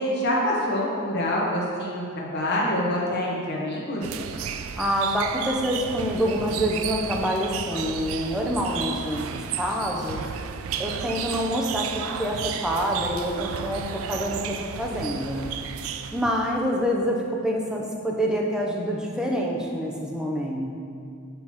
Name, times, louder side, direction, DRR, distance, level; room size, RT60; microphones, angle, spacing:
voice 1, 0.0-4.0, left 1 dB, 50° left, -4 dB, 0.9 m, -26 dB
sound 1, 4.0-16.5, right 7 dB, 70° right, 0.3 m, -33 dB
voice 2, 4.8-9.2 9.5-10.3 10.8-11.9 12.2-15.5 16.1-20.7, equal, 5° right, -1 dB, 0.5 m, -26 dB
6.6 x 2.9 x 5.6 m, 2.4 s
head